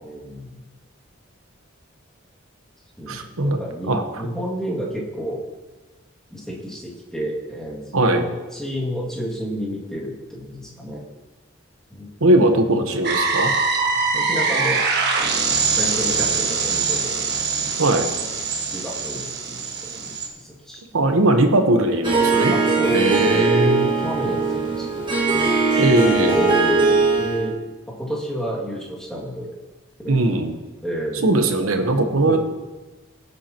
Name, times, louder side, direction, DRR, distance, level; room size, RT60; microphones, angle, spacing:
voice 1, 0.0-0.6 3.0-5.4 6.3-11.0 11.9-12.9 13.9-14.8 15.7-17.2 17.6-17.8 18.2-18.3 18.7-21.1 21.8-22.0 22.5-23.5 24.0-25.0 25.3-25.5 26.3-27.6 28.0-29.5 30.0-30.5 30.8-31.3 32.2-32.4, equal, 5° left, -5 dB, 2.2 m, -31 dB
voice 2, 3.1-3.6 3.9-4.0 7.9-8.2 12.2-13.5 17.8-18.1 20.9-22.5 22.9-23.9 25.8-26.4 30.1-30.5 31.2-32.4, right 2 dB, 85° right, 6 dB, 1.1 m, -19 dB
sound 1, 13.0-20.3, right 4 dB, 50° right, 1.6 m, -23 dB
Harp, 22.0-27.5, right 4 dB, 25° right, 1.6 m, -20 dB
16.5 x 8.2 x 3.0 m, 1.2 s
head